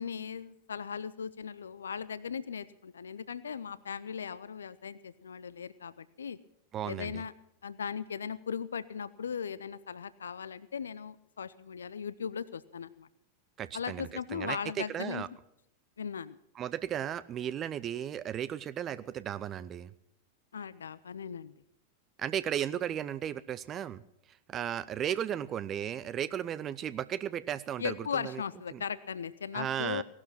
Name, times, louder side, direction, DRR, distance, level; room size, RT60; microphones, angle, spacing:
voice 1, 0.0-6.4 6.8-7.3 7.6-13.1 13.7-15.2 16.0-16.4 20.5-21.5 27.8-30.0, left 7 dB, 70° left, 17 dB, 0.5 m, -38 dB
voice 2, 6.7-7.2 13.6-15.3 16.6-19.9 22.2-24.0 24.5-28.4 28.7-28.8 29.5-30.0, right 10 dB, 30° right, 16 dB, 0.5 m, -35 dB
17.5 x 12.0 x 6.0 m, 0.77 s
figure-of-eight pair, 90°, 0 cm